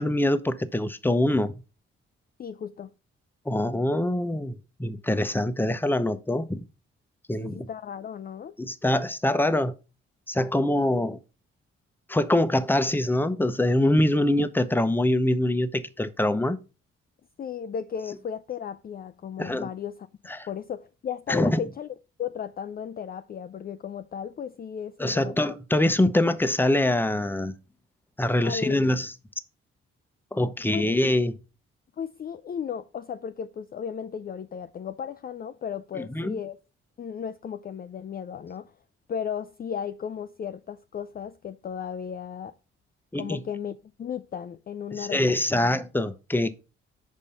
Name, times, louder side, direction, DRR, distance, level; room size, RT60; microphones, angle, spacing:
voice 1, 0.0-1.5 3.5-6.6 7.3-7.7 8.6-9.7 10.3-11.2 12.1-16.6 19.4-19.7 20.3-20.5 21.3-21.6 25.0-27.5 28.2-29.1 30.3-31.3 35.9-36.4 43.1-43.4 44.9-46.5, left 1 dB, 5° left, 0.7 m, -24 dB
voice 2, 2.4-2.9 7.4-8.6 17.4-20.1 20.5-25.3 28.4-28.9 30.7-30.9 32.0-36.6 37.0-38.7 39.1-42.5 43.2-45.8, left 8 dB, 30° left, 0.4 m, -35 dB
5.4 x 4.2 x 5.2 m
hypercardioid pair, 40°, 31 cm